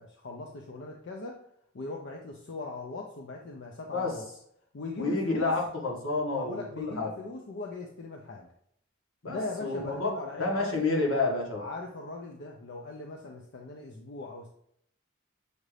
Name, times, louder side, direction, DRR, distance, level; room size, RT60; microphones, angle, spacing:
voice 1, 0.0-1.4 1.7-4.2 4.7-5.6 6.3-8.5 9.3-10.7 11.6-14.5, left 2 dB, 60° left, 1 dB, 0.5 m, -40 dB
voice 2, 5.0-7.1 9.2-10.1 10.4-11.7, left 3 dB, 85° left, -2 dB, 1.4 m, -29 dB
6.5 x 2.5 x 3.2 m, 0.70 s
head